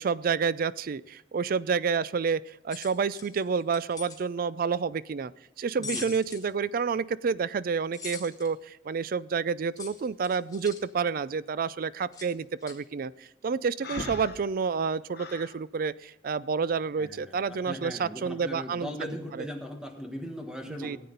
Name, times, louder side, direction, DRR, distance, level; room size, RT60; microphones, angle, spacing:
voice 1, 0.0-5.3 5.6-18.9 19.3-19.5 20.7-21.0, right 5 dB, 50° right, 18 dB, 0.4 m, -29 dB
sound 1, 2.7-4.2 5.8-6.5 7.9-8.5 9.8-10.8 12.1-12.3 12.6-12.8, left 5 dB, 20° left, 1.5 m, -41 dB
Breathing, 13.8-15.6, left 3 dB, 60° left, 1.1 m, -39 dB
voice 2, 17.0-21.0, equal, 5° right, 3 dB, 1.5 m, -39 dB
17.0 x 8.5 x 3.9 m, 0.91 s
head